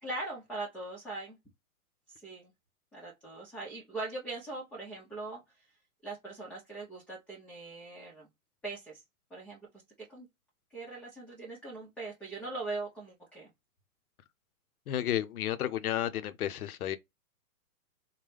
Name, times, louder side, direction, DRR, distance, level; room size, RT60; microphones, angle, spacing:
voice 1, 0.0-1.4 2.1-2.5 2.9-5.4 6.0-8.3 8.6-9.0 9.3-9.7 10.1-10.3 10.7-13.5, right 3 dB, 5° left, 0.7 m, -41 dB
voice 2, 14.9-17.0, left 11 dB, 80° left, 0.7 m, -32 dB
3.8 x 2.2 x 3.2 m
hypercardioid pair, 135°, 44 cm